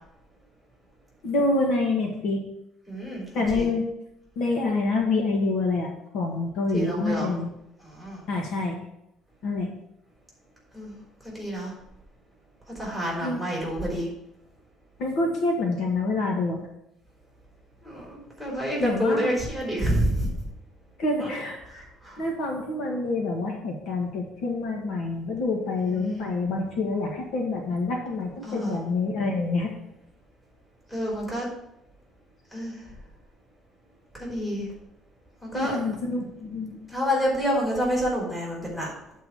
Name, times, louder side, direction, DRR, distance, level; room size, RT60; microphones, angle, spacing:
voice 1, 1.2-2.4 3.3-3.8 4.4-7.5 8.3-8.8 9.4-9.7 13.2-13.4 15.0-16.7 18.8-19.4 21.0-21.8 22.2-29.7 35.5-36.8, left 3 dB, 60° left, 0 dB, 1.7 m, -27 dB
voice 2, 2.9-3.2 3.5-3.7 6.7-7.4 7.9-8.2 10.7-10.9 11.2-11.7 12.8-14.1 17.8-20.3 21.2-21.3 21.7-22.2 25.9-26.3 28.4-28.8 30.9-31.5 32.5-32.8 34.2-34.7 35.4-35.8 36.9-38.9, equal, 5° left, -4 dB, 3.7 m, -28 dB
8.1 x 4.6 x 7.1 m, 0.82 s
cardioid pair, 160°, 0 cm